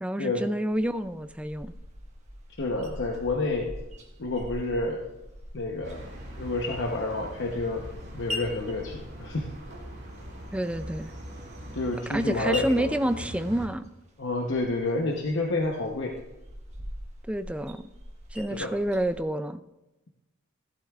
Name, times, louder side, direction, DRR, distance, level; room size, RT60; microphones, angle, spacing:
voice 1, 0.0-1.7 10.5-11.1 12.1-13.9 17.3-17.8 18.3-19.6, right 1 dB, 5° right, 12 dB, 0.3 m, -28 dB
sound 1, 0.7-19.2, left 1 dB, 35° right, 1.4 m, -44 dB
voice 2, 2.6-3.7 4.2-5.1 5.5-6.1 6.4-7.9 8.1-9.5 11.7-12.9 14.2-16.2 18.5-18.7, left 2 dB, 60° left, 0 dB, 0.9 m, -29 dB
sound 2, 5.8-13.7, equal, 55° right, 2.4 m, -42 dB
15.5 x 11.5 x 2.4 m, 1.0 s
head